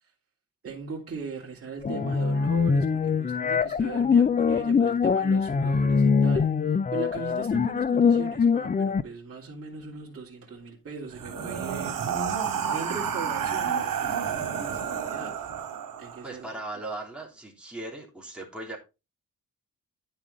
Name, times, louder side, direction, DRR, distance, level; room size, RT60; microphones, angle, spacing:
voice 1, 0.6-6.5 6.9-12.1 12.7-15.4 16.0-16.6, right 5 dB, 40° right, 3.1 m, -39 dB
sound 1, 1.8-9.0, left 5 dB, 25° left, 0.5 m, -23 dB
sound 2, 11.1-16.3, right 7 dB, 70° right, 2.7 m, -30 dB
voice 2, 16.2-18.8, right 2 dB, 5° right, 3.3 m, -38 dB
10.0 x 7.3 x 3.9 m
wide cardioid pair, 130°, 34 cm